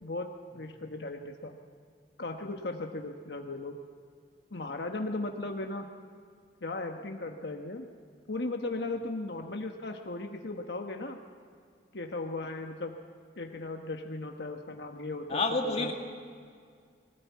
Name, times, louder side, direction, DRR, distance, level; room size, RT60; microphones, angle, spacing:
voice 1, 0.0-1.6 2.2-3.8 4.5-5.9 6.6-7.9 8.3-11.2 11.9-12.9 13.4-15.9, left 2 dB, 70° left, 3 dB, 1.2 m, -37 dB
voice 2, 15.3-15.9, left 3 dB, 35° left, 2 dB, 2.0 m, -28 dB
21.0 x 17.5 x 8.3 m, 2.1 s
head